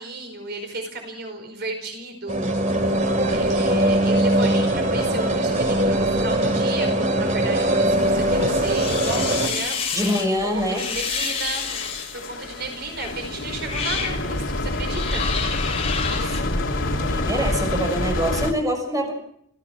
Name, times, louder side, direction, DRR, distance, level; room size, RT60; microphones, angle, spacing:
voice 1, 0.0-2.5 3.3-9.8 10.5-11.7 12.1-15.3, right 3 dB, 60° right, 4 dB, 4.9 m, -33 dB
sound 1, 2.3-9.5, right 1 dB, 40° right, 2.8 m, -21 dB
sound 2, 3.0-3.6 4.8-5.2 5.5-6.9 7.2-18.5, left 2 dB, 75° left, 2.7 m, -29 dB
sound 3, 8.5-10.3 10.7-12.3 13.0-13.1 13.6-14.2 14.9-16.4, left 6 dB, 35° left, 4.4 m, -29 dB
voice 2, 9.9-10.9 16.1-19.1, equal, 20° right, 3 dB, 6.4 m, -25 dB
29.0 x 15.5 x 6.1 m, 0.68 s
head